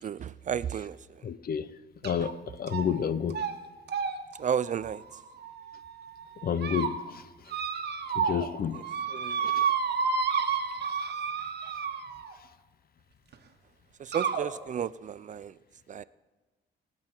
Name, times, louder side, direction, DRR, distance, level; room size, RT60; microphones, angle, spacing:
voice 1, 0.0-1.3 4.4-5.0 8.7-8.8 9.1-9.4 14.0-15.6 15.9-16.0, right 8 dB, 40° right, 0.4 m, -33 dB
voice 2, 1.2-1.7 2.0-3.4 6.4-7.0 8.2-8.8 9.4-9.7, left 8 dB, 50° left, 0.7 m, -30 dB
sound 1, 2.0-2.3 2.7-3.0 3.3-3.5 3.9-5.8 6.3-6.9 7.5-8.5 8.7-12.3 13.3-13.4 14.1-14.5, right 6 dB, 55° right, 1.4 m, -31 dB
22.0 x 7.8 x 4.5 m
cardioid pair, 90°, 20 cm